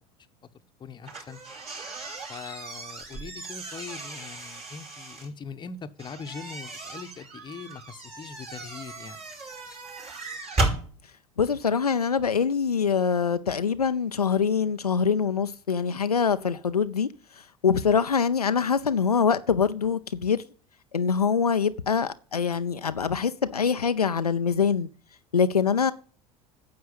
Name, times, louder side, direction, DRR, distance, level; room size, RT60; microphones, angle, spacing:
voice 1, 0.8-1.4 2.3-9.2, left 5 dB, 25° left, 1.0 m, -41 dB
sound 1, 1.0-5.3 6.0-10.8, right 2 dB, 35° right, 5.0 m, -35 dB
voice 2, 11.4-17.1 17.4-20.4 20.9-24.9 25.3-25.9, left 6 dB, 85° left, 0.5 m, -24 dB
9.5 x 7.6 x 7.8 m
figure-of-eight pair, 70°, 19 cm